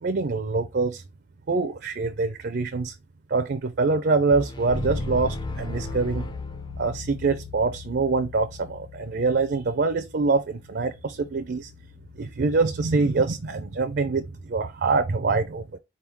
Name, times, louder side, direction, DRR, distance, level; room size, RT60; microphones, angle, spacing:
voice 1, 0.0-1.0 1.5-2.9 3.3-6.3 6.8-11.7 12.2-15.8, right 3 dB, 50° right, 0.4 m, -25 dB
sound 1, 4.3-7.3, left 1 dB, 20° left, 0.5 m, -38 dB
Bass guitar, 4.7-14.5, left 3 dB, 60° left, 1.4 m, -39 dB
4.3 x 3.5 x 2.9 m
head